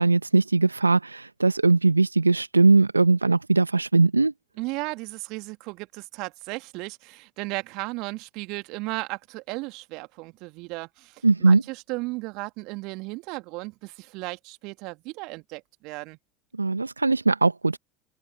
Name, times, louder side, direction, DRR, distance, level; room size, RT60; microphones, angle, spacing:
voice 1, 0.0-4.3 11.2-11.6 16.6-17.8, right 3 dB, 85° right, 1.2 m, -20 dB
voice 2, 4.6-16.2, right 25 dB, 55° right, 2.2 m, -35 dB
open air
figure-of-eight pair, 75°, 0 cm